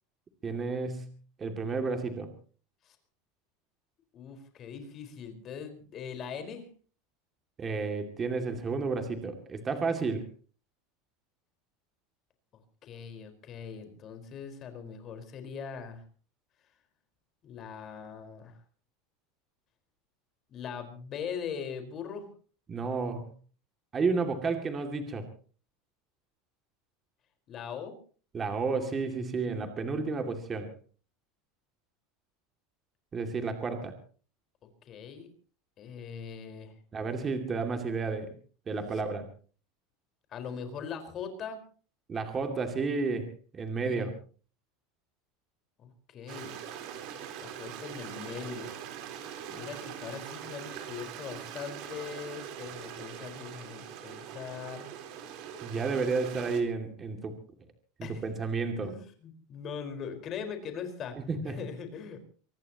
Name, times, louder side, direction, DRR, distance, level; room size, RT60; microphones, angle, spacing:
voice 1, 0.4-1.1 1.4-2.3 7.6-10.2 22.7-23.3 23.9-25.3 28.3-30.7 33.1-33.9 36.9-38.4 38.7-39.3 42.1-44.1 55.6-57.4 58.0-58.9 61.3-61.6, right 4 dB, 20° right, 5 dB, 2.4 m, -31 dB
voice 2, 4.1-6.7 12.8-16.0 17.4-18.6 20.5-22.3 27.5-27.9 34.8-35.3 35.8-36.7 38.9-39.0 40.3-41.6 43.7-44.1 45.8-46.6 47.4-48.8 49.5-54.9 58.0-58.2 58.8-61.2 61.5-62.3, left 7 dB, 30° left, 7 dB, 4.6 m, -41 dB
Stream, 46.3-56.6, right 9 dB, 50° right, 4.0 m, -42 dB
24.5 x 20.0 x 3.0 m, 0.41 s
supercardioid pair, 160°, 0 cm